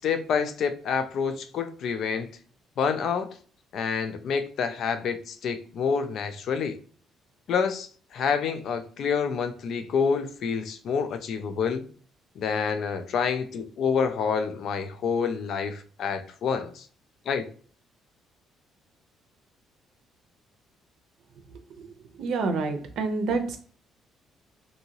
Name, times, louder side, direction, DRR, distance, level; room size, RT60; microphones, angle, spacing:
voice 1, 0.0-2.3 2.8-3.3 3.7-6.8 7.5-11.9 12.4-16.9 17.3-17.5, left 6 dB, 50° left, 0.3 m, -28 dB
voice 2, 22.2-23.6, right 3 dB, 65° right, 0.6 m, -27 dB
2.8 x 2.7 x 2.8 m
cardioid pair, 160°, 0 cm